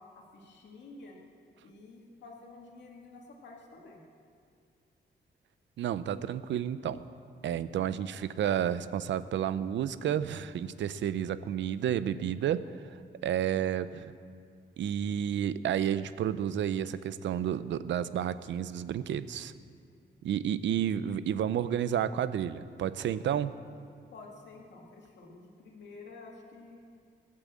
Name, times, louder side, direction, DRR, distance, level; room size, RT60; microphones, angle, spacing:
voice 1, 0.1-1.2 1.6-4.0 24.1-26.8, left 3 dB, 75° left, -1 dB, 2.3 m, -50 dB
voice 2, 5.8-7.0 7.4-12.6 12.9-14.1 14.8-19.5 20.2-23.5, right 9 dB, 90° right, 14 dB, 0.6 m, -31 dB
20.5 x 8.7 x 7.4 m, 2.2 s
wide cardioid pair, 155°, 19 cm